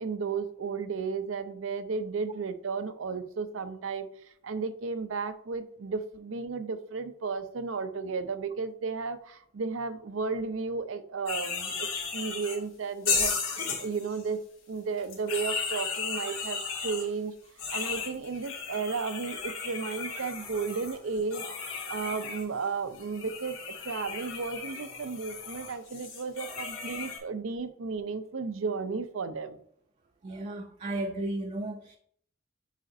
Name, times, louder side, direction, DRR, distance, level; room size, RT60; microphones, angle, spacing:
voice 1, 0.0-4.1 4.4-11.9 12.1-14.4 14.7-17.3 17.7-21.4 21.9-23.6 23.8-29.6, right 4 dB, 90° right, 0.6 m, -34 dB
sound 1, 11.3-12.6 13.0-14.2 15.0-17.0 17.6-22.4 22.9-27.2, left 5 dB, 85° left, 2.7 m, -35 dB
voice 2, 30.2-32.0, right 1 dB, 35° right, 0.5 m, -34 dB
8.1 x 5.0 x 2.6 m
head